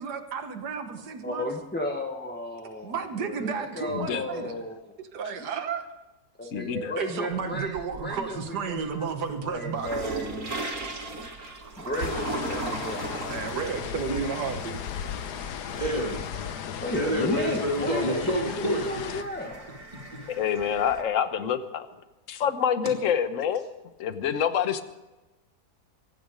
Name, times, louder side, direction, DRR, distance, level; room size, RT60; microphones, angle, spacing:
voice 1, 0.0-1.5 2.8-4.5 5.1-5.8 7.0-9.9 10.6-10.7 13.3-14.8, right 6 dB, 90° right, 6 dB, 1.8 m, -32 dB
voice 2, 1.2-4.8 6.4-9.1 9.4-10.6 10.8-11.1 11.8-13.6 16.8-18.3 18.7-19.6, left 1 dB, 5° left, 1 dB, 1.2 m, -34 dB
voice 3, 3.9-4.5 6.5-6.9 17.2-17.4 20.3-21.9 22.3-23.6 24.0-24.8, left 8 dB, 55° left, 10 dB, 1.3 m, -27 dB
sound 1, 7.3-8.3 8.7-21.0, right 2 dB, 65° right, 2.8 m, -38 dB
sound 2, 12.0-19.2, left 9 dB, 85° left, 1.4 m, -36 dB
voice 4, 15.5-16.6 16.9-18.9 20.0-20.3, equal, 25° right, -1 dB, 2.8 m, -28 dB
24.0 x 10.5 x 5.2 m, 1.1 s
omnidirectional pair, 1.7 m